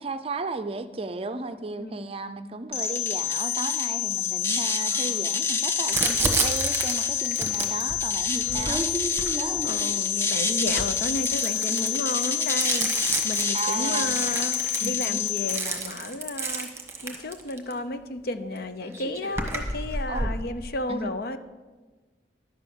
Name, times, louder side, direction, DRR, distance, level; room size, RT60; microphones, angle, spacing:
voice 1, 0.0-8.9 13.5-14.2 14.8-15.2 20.1-20.3 20.9-21.1, right 3 dB, 35° right, 10 dB, 0.5 m, -34 dB
voice 2, 1.8-2.1 4.8-5.2 8.4-8.7 9.6-12.9 13.2-16.7 17.0-21.4, left 2 dB, 55° left, 10 dB, 0.7 m, -33 dB
sound 1, 2.7-15.6, left 7 dB, 15° left, 0.8 m, -27 dB
Crumpling crinkling, 5.9-9.9 10.6-17.7 18.6-18.7 18.8-20.4, right 3 dB, 15° right, 1.4 m, -30 dB
11.0 x 7.0 x 6.9 m, 1.3 s
head